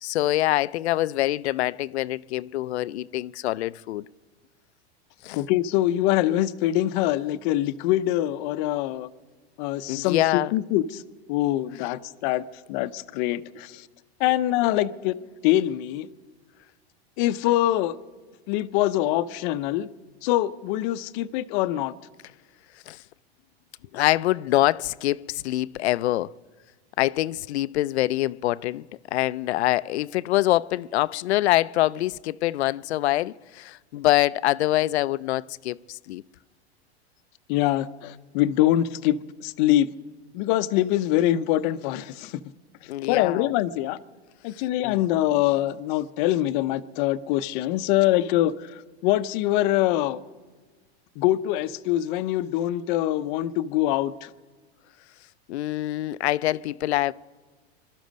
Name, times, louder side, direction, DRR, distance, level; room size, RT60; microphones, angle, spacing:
voice 1, 0.0-4.1 5.2-5.4 9.9-10.5 22.9-23.0 23.9-26.3 27.0-28.9 29.1-36.2 42.9-43.5 44.8-45.0 55.5-57.1, left 15 dB, 90° left, 0.5 m, -25 dB
voice 2, 5.3-9.1 9.6-11.0 11.3-12.4 12.7-13.9 14.2-15.1 15.4-16.1 17.2-18.0 18.5-19.9 20.2-21.9 37.5-39.9 40.3-42.4 43.1-44.0 44.4-50.2 51.2-54.3, left 14 dB, 50° left, 0.7 m, -24 dB
22.0 x 12.5 x 5.2 m
supercardioid pair, 135°, 32 cm